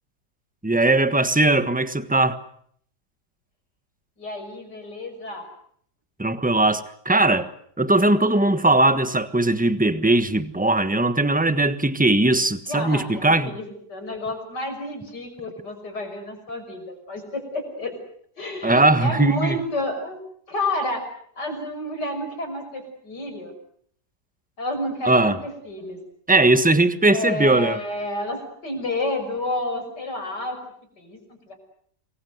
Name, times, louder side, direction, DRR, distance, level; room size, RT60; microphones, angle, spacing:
voice 1, 0.6-2.4 6.2-7.5 7.8-13.5 18.6-19.6 25.0-25.4 26.3-27.8, right 2 dB, 5° right, 1.2 m, -19 dB
voice 2, 4.2-5.5 12.7-17.9 18.4-20.2 20.5-21.0 21.4-23.5 24.6-26.0 27.1-30.6 31.0-31.2 31.5-31.6, left 1 dB, 85° left, 6.7 m, -30 dB
27.5 x 22.0 x 8.0 m
omnidirectional pair, 1.8 m